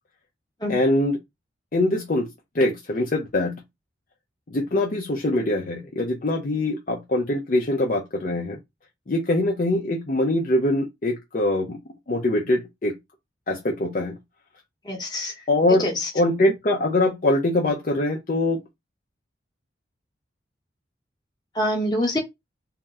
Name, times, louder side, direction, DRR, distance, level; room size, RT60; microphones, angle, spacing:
voice 1, 0.7-1.2 1.7-2.3 2.5-3.6 4.5-8.6 9.1-11.8 12.1-13.0 13.5-14.2 15.5-15.9 16.1-18.6, left 1 dB, 45° left, 0.5 m, -23 dB
voice 2, 14.8-15.3 15.8-16.1 21.5-22.2, left 1 dB, 20° left, 1.0 m, -25 dB
2.7 x 2.0 x 3.5 m
head